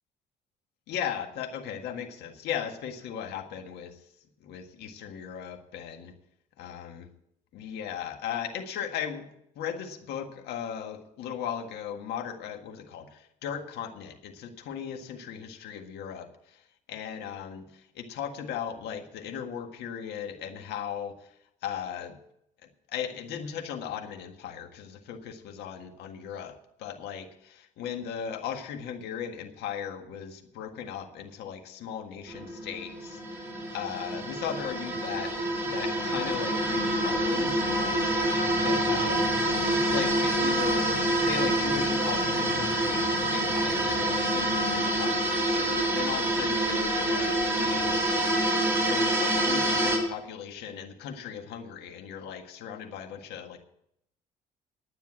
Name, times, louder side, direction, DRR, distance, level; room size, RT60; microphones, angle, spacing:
voice 1, 0.9-4.0 4.4-6.1 6.6-7.1 7.5-9.3 9.6-16.6 16.9-21.3 21.6-22.2 22.9-26.5 26.8-35.3 35.6-38.1 38.5-43.1 43.3-48.0 48.9-53.6, left 8 dB, 80° left, 5 dB, 1.7 m, -37 dB
sound 1, 32.3-50.0, right 1 dB, 15° right, 3.5 m, -27 dB
10.5 x 9.3 x 7.5 m, 0.75 s
cardioid pair, 110°, 17 cm